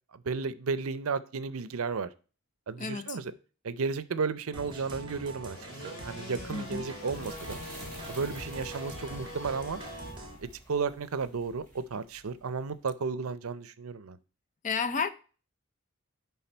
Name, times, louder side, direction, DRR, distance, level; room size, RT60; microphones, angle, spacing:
voice 1, 0.1-2.1 2.7-3.3 3.6-5.6 5.8-7.6 8.1-9.8 10.4-14.2, right 5 dB, 75° right, 0.6 m, -33 dB
voice 2, 2.8-3.2 6.5-6.8 14.6-15.1, left 5 dB, 35° left, 0.5 m, -31 dB
sound 1, 4.5-10.4, right 2 dB, 20° right, 1.9 m, -44 dB
sound 2, 5.1-10.1, left 2 dB, 70° left, 2.3 m, -45 dB
sound 3, 6.2-12.8, right 1 dB, 5° left, 4.1 m, -51 dB
10.0 x 3.5 x 4.4 m
head